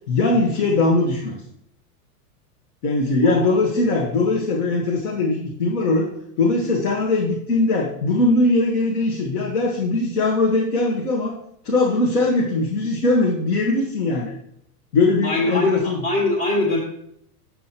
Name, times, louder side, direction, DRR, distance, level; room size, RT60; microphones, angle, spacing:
voice 1, 0.1-1.4 2.8-6.1 6.4-11.3 11.6-14.3 14.9-16.0, left 2 dB, 75° left, 0 dB, 1.6 m, -20 dB
voice 2, 3.2-3.6 15.2-16.8, left 2 dB, 35° left, -2 dB, 1.8 m, -22 dB
8.4 x 7.7 x 2.9 m, 0.72 s
supercardioid pair, 160°, 45 cm